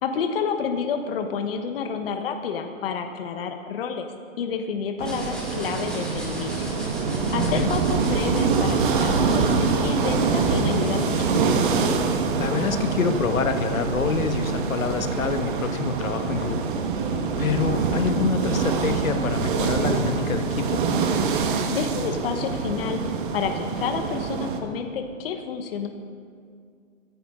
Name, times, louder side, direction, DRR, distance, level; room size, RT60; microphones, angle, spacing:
voice 1, 0.0-4.1 4.4-6.7 7.3-11.3 17.4-17.7 21.4-23.0 23.3-25.9, left 6 dB, 45° left, 6 dB, 1.2 m, -29 dB
sound 1, 5.0-11.7, left 1 dB, ahead, 2.4 m, -40 dB
sound 2, 5.0-24.6, right 4 dB, 40° right, 1.4 m, -25 dB
voice 2, 7.4-7.7 12.4-16.7 17.4-20.8, left 5 dB, 80° left, 7 dB, 1.5 m, -26 dB
22.5 x 10.5 x 3.7 m, 2.2 s
hypercardioid pair, 155°, 40 cm